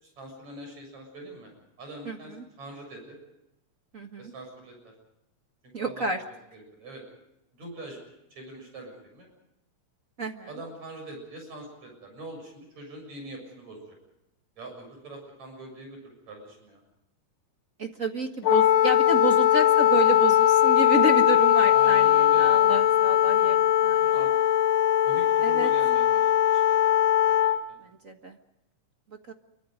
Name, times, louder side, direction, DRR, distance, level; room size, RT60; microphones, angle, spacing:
voice 1, 0.0-1.5 1.8-3.2 4.2-4.9 5.6-7.0 7.5-8.0 8.3-9.3 10.5-13.9 14.6-16.8 21.7-22.8 24.0-24.3 25.0-27.0 27.2-27.4 27.7-27.8, right 1 dB, 65° right, 3 dB, 8.3 m, -43 dB
voice 2, 3.9-4.3 5.7-6.2 10.2-10.5 17.8-24.1 25.4-25.7 28.0-28.4 29.3-29.4, right 3 dB, 35° right, 5 dB, 1.3 m, -30 dB
Wind instrument woodwind instrument, 18.4-27.6, left 11 dB, 70° left, 2.1 m, -20 dB
27.5 x 24.5 x 5.2 m, 0.87 s
omnidirectional pair, 3.4 m